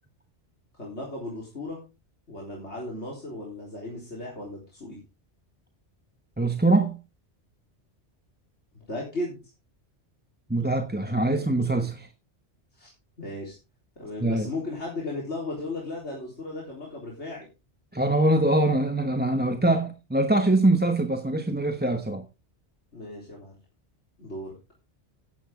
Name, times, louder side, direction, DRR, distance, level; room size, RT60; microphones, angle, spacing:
voice 1, 0.7-1.8 2.3-5.0 8.7-9.4 12.8-12.9 13.2-13.6 14.0-17.5 22.9-23.5 24.2-24.5, left 2 dB, 75° left, 4.2 m, -36 dB
voice 2, 6.4-7.0 10.5-12.1 14.2-14.5 17.9-22.2, right 2 dB, 10° right, 1.0 m, -23 dB
14.0 x 10.0 x 3.7 m
omnidirectional pair, 1.2 m